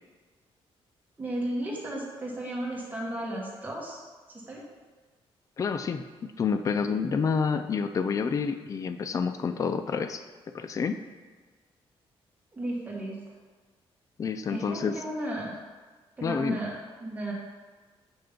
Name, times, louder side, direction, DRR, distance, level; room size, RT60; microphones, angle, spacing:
voice 1, 1.2-4.0 4.3-4.6 12.5-13.2 14.5-15.5 16.2-16.7 17.0-17.3, right 1 dB, 15° right, -4 dB, 1.6 m, -34 dB
voice 2, 5.6-10.2 10.5-11.0 14.2-15.0 16.2-16.6, left 5 dB, 35° left, 9 dB, 0.3 m, -28 dB
7.0 x 3.3 x 5.2 m, 1.4 s
cardioid pair, 120°, 10 cm